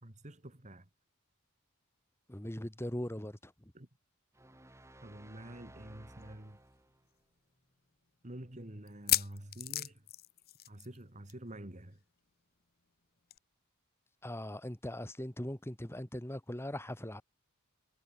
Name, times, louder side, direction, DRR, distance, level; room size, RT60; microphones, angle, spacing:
voice 1, 0.0-0.9 3.7-3.9 5.0-6.6 8.2-10.0 10.7-12.0, right 1 dB, 35° right, 2.4 m, -48 dB
voice 2, 2.3-3.7 14.2-17.2, left 1 dB, 10° left, 1.9 m, -40 dB
sound 1, 4.3-7.1, right 1 dB, 15° right, 3.7 m, -56 dB
sound 2, 6.2-6.3 6.6-6.7 7.3-7.4 8.9-11.0 11.3-11.5 11.7-11.8 13.3-13.4, left 14 dB, 45° left, 1.0 m, -34 dB
head